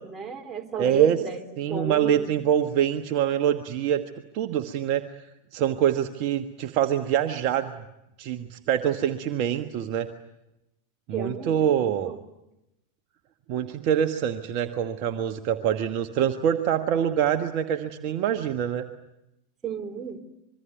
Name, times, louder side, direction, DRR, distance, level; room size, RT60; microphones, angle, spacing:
voice 1, 0.0-1.4 1.7-2.3 11.1-12.2 19.6-20.2, right 8 dB, 15° right, 3 dB, 3.5 m, -30 dB
voice 2, 0.8-1.2 1.6-4.0 4.3-5.1 5.5-7.9 8.2-10.1 11.1-12.1 13.5-18.9, right 9 dB, 45° right, 7 dB, 1.3 m, -25 dB
26.0 x 23.0 x 9.4 m, 0.89 s
figure-of-eight pair, 90°, 0 cm